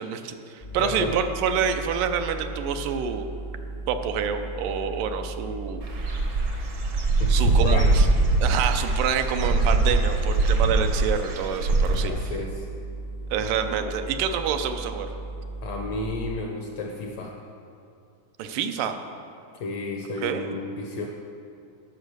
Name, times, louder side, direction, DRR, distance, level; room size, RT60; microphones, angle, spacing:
voice 1, 0.0-3.3 3.9-5.9 7.3-8.1 8.4-12.1 13.3-15.1 18.4-19.0 20.2-20.4, right 7 dB, 85° right, 7 dB, 2.3 m, -27 dB
sound 1, 0.6-8.8 11.7-16.4, right 2 dB, 40° left, 0.6 m, -36 dB
voice 2, 0.8-1.2 7.2-8.0 12.1-12.6 15.6-17.4 19.6-21.1, left 3 dB, 75° left, 1 dB, 1.6 m, -32 dB
Dog / Bird, 5.8-12.1, right 3 dB, 60° right, 1.1 m, -22 dB
13.0 x 6.0 x 6.5 m, 2.5 s
omnidirectional pair, 3.8 m